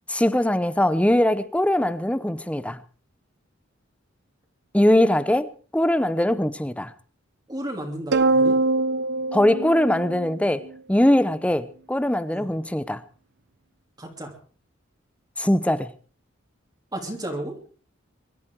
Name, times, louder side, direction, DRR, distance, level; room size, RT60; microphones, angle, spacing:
voice 1, 0.1-2.8 4.7-6.9 9.3-13.0 15.4-15.9, left 1 dB, 5° left, 0.7 m, -21 dB
voice 2, 7.5-8.6 12.3-12.5 14.0-14.3 16.9-17.6, right 1 dB, 20° right, 3.0 m, -33 dB
sound 1, 8.1-10.7, right 3 dB, 55° right, 0.8 m, -23 dB
23.5 x 12.5 x 4.7 m
head